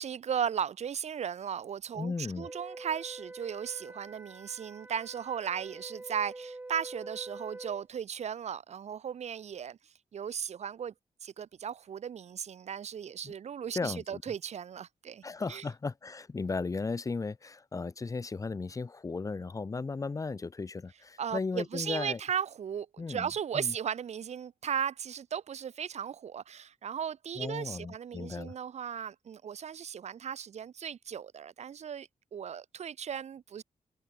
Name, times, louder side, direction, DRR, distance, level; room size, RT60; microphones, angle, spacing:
voice 1, 0.0-9.8 10.1-10.9 11.2-15.2 15.5-15.6 21.2-33.6, right 8 dB, 60° right, 1.3 m, -36 dB
voice 2, 2.0-2.5 13.7-14.2 15.2-22.2 23.0-23.3 23.5-23.7 27.4-28.5, left 4 dB, 25° left, 2.0 m, -35 dB
Wind instrument woodwind instrument, 2.4-7.9, right 2 dB, 15° right, 4.8 m, -46 dB
wide cardioid pair, 175°, 13 cm